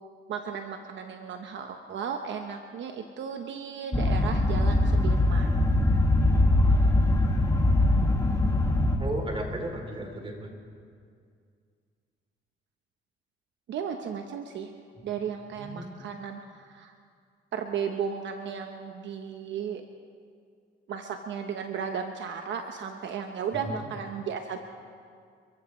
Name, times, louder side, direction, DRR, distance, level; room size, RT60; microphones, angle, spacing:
voice 1, 0.3-5.5 13.7-14.7 15.0-16.9 17.5-19.8 20.9-24.6, right 7 dB, 70° right, 5 dB, 1.0 m, -35 dB
sound 1, 3.9-9.0, left 1 dB, 15° left, 2.0 m, -22 dB
voice 2, 9.0-10.5 15.0-15.1 15.5-16.0 23.5-23.8, right 1 dB, 25° right, 2 dB, 3.2 m, -35 dB
28.5 x 15.0 x 3.2 m, 2.2 s
cardioid pair, 90°, 20 cm